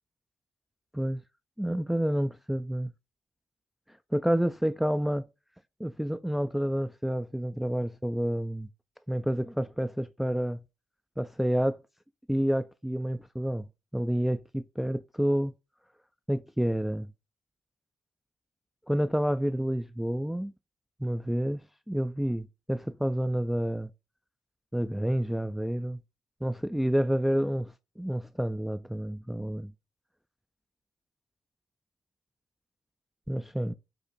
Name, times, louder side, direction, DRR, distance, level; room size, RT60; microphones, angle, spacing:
voice 1, 1.6-2.9 4.1-5.3 5.8-8.7 9.1-10.6 11.2-11.8 12.3-13.6 13.9-15.5 16.3-17.1 18.9-20.5 21.0-23.9 24.7-26.0 26.4-29.7 33.3-33.7, equal, 5° right, 0.3 m, -29 dB
5.2 x 2.1 x 4.0 m
hypercardioid pair, 45°, 7 cm